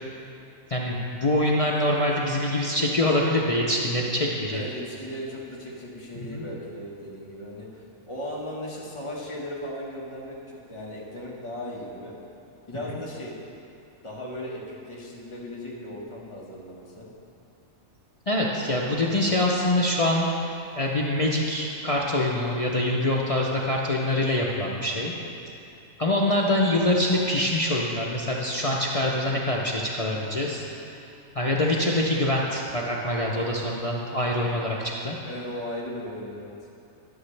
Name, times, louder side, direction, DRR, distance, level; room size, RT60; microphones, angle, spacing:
voice 1, 0.7-4.6 6.3-6.4 18.3-25.1 26.0-30.6 31.3-35.2, left 1 dB, 55° left, -3 dB, 0.4 m, -25 dB
voice 2, 4.5-12.1 12.7-13.3 14.0-17.1 35.2-36.5, left 1 dB, 20° left, -6 dB, 1.4 m, -37 dB
12.0 x 6.9 x 3.3 m, 2.6 s
omnidirectional pair, 1.5 m